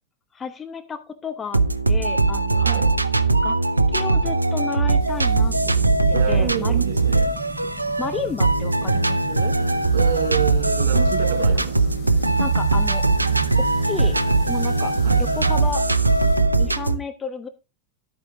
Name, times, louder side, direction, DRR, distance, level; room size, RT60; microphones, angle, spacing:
voice 1, 0.3-1.6 1.9-2.7 3.4-3.6 3.9-5.9 6.3-6.8 8.0-9.5 12.4-13.0 13.8-14.2 14.5-14.9 15.2-15.8 16.6-17.5, left 5 dB, 20° left, 1.1 m, -32 dB
sound 1, 1.5-17.0, right 3 dB, 85° right, 0.6 m, -20 dB
voice 2, 2.6-2.9 6.1-7.4 9.9-12.4 15.0-15.3, right 10 dB, 55° right, 4.5 m, -29 dB
sound 2, 5.0-16.4, left 5 dB, 50° left, 3.2 m, -41 dB
sound 3, 5.5-15.5, right 6 dB, 10° right, 4.9 m, -37 dB
11.0 x 9.1 x 3.7 m
figure-of-eight pair, 90°, 0 cm